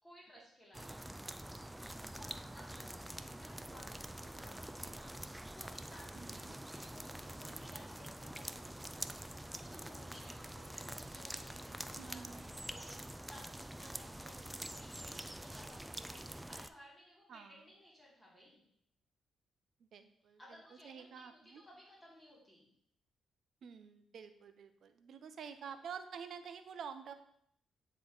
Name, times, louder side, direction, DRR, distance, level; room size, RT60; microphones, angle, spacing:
voice 1, 0.0-1.2 2.2-9.0 9.5-18.6 20.4-22.7, equal, 20° left, -5 dB, 2.6 m, -59 dB
sound 1, 0.7-16.7, right 1 dB, 10° right, 0.3 m, -46 dB
voice 2, 6.2-6.5 12.0-12.4 17.3-17.6 19.9-20.4 20.8-21.6 23.6-27.1, right 7 dB, 65° right, 9 dB, 0.6 m, -49 dB
9.3 x 3.2 x 3.9 m, 0.71 s
cardioid pair, 70°, 0 cm